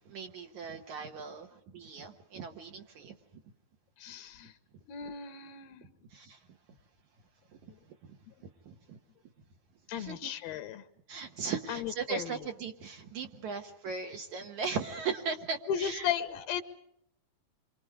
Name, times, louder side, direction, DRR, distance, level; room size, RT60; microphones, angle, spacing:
voice 1, 0.0-3.2 6.1-6.4 7.6-7.7 8.1-8.2 8.7-9.0 9.9-10.3 11.1-16.1, right 5 dB, 60° right, 3 dB, 2.4 m, -38 dB
voice 2, 4.0-4.5 4.9-5.8 8.3-8.4 9.9-10.8 11.7-12.4 15.7-16.6, left 9 dB, 80° left, 10 dB, 2.9 m, -35 dB
28.5 x 25.0 x 4.9 m, 0.75 s
omnidirectional pair, 4.3 m